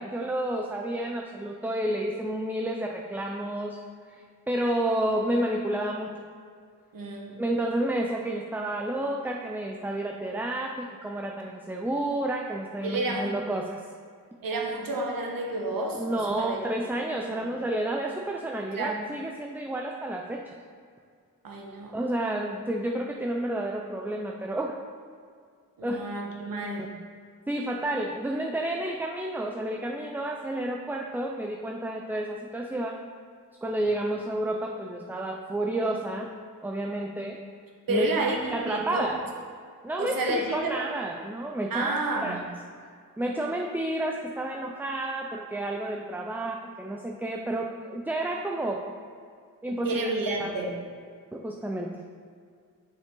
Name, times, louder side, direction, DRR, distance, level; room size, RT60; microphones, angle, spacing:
voice 1, 0.0-3.8 4.1-6.2 7.4-13.8 16.0-20.5 21.9-24.8 25.8-26.0 27.5-33.0 33.6-36.3 36.6-37.4 37.9-38.1 38.5-39.2 39.8-41.9 42.2-42.4 43.2-48.8 49.6-50.1 50.4-50.5 51.3-52.0, right 1 dB, 5° right, 1 dB, 0.4 m, -30 dB
voice 2, 6.9-7.4 12.8-13.4 14.4-16.6 17.3-17.4 18.7-19.0 21.4-22.0 25.8-26.9 37.9-39.1 40.0-40.8 41.7-42.5 49.8-50.7, right 2 dB, 85° right, 0 dB, 1.2 m, -30 dB
7.2 x 5.7 x 3.8 m, 2.2 s
cardioid pair, 85°, 34 cm